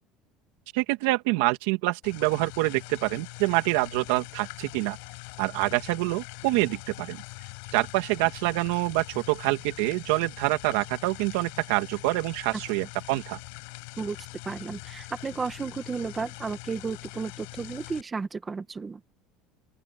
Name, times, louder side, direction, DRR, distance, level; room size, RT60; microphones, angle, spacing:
voice 1, 0.7-5.0 5.4-7.2 7.7-13.4, right 21 dB, 70° right, 2.5 m, -26 dB
sound 1, 2.0-18.0, left 33 dB, 70° left, 5.1 m, -43 dB
voice 2, 14.0-19.0, right 5 dB, 15° right, 1.4 m, -33 dB
open air
cardioid pair, 180°, 0 cm